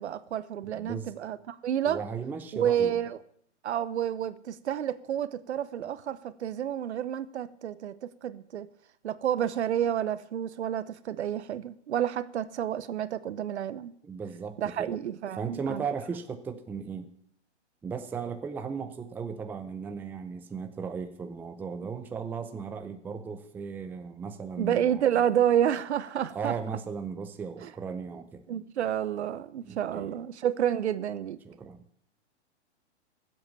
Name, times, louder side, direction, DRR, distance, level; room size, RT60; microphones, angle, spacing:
voice 1, 0.0-2.0 2.5-3.2 3.6-8.7 9.0-13.9 14.6-15.8 24.6-26.5 28.5-31.4, right 10 dB, 70° right, 0.9 m, -29 dB
voice 2, 0.6-1.1 1.8-3.0 14.0-15.0 15.3-17.1 17.8-25.1 26.3-28.4 29.6-30.2 31.4-31.8, right 6 dB, 5° right, 0.5 m, -36 dB
16.0 x 8.0 x 7.0 m
hypercardioid pair, 135°, 35 cm